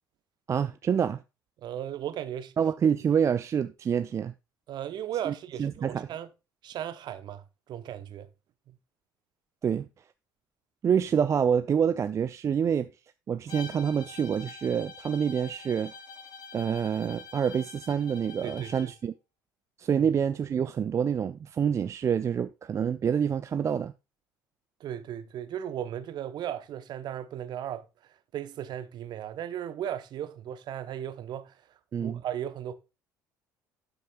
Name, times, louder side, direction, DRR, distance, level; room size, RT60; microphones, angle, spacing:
voice 1, 0.5-1.2 2.6-4.3 5.2-5.3 5.6-6.1 9.6-9.9 10.8-12.9 13.3-15.9 16.5-19.1 19.8-23.9 31.9-32.2, right 7 dB, 30° right, 0.4 m, -27 dB
voice 2, 1.6-2.5 4.7-6.3 6.6-8.3 18.4-18.9 19.9-20.1 24.8-31.5 32.0-32.7, right 10 dB, 45° right, 0.9 m, -36 dB
Bowed string instrument, 13.5-18.9, left 5 dB, 45° left, 3.6 m, -46 dB
12.0 x 6.7 x 2.4 m
figure-of-eight pair, 55°, 10 cm